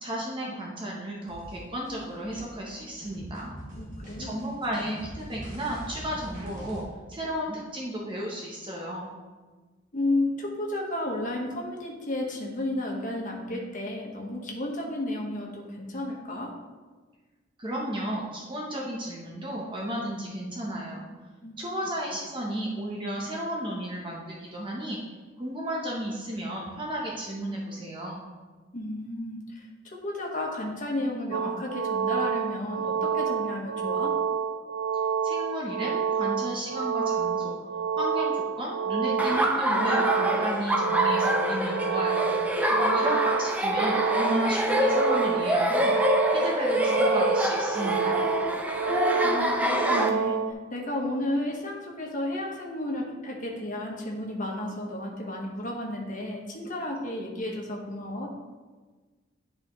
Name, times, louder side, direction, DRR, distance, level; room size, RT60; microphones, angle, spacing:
voice 1, 0.0-3.5 4.2-6.8 7.1-9.1 17.6-21.0 21.6-25.0 25.4-28.2 35.2-37.6 37.9-42.4 42.9-46.0 46.3-48.2, right 1 dB, 25° right, -3 dB, 0.8 m, -33 dB
sound 1, 1.3-6.8, right 1 dB, 45° right, 1.8 m, -42 dB
voice 2, 3.8-4.4 9.9-16.5 21.4-21.6 28.7-34.2 42.7-43.1 49.2-50.4 50.7-58.3, left 1 dB, 45° left, -1 dB, 1.3 m, -32 dB
sound 2, 31.3-50.5, right 6 dB, 65° right, 0.3 m, -29 dB
Laughter, 39.2-50.1, equal, 10° right, 0.5 m, -26 dB
10.0 x 4.3 x 3.1 m, 1.3 s
head